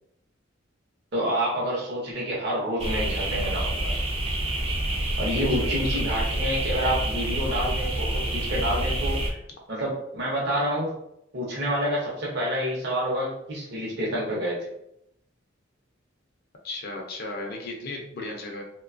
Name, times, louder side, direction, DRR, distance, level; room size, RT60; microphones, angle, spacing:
voice 1, 1.1-3.9 5.2-9.4 9.7-10.9 11.3-14.6, equal, 55° right, -5 dB, 0.7 m, -28 dB
sound 1, 2.8-9.3, right 1 dB, 30° right, 0.3 m, -27 dB
voice 2, 5.5-6.0 16.6-18.6, left 2 dB, 50° left, 1 dB, 0.4 m, -35 dB
2.6 x 2.2 x 2.4 m, 0.77 s
head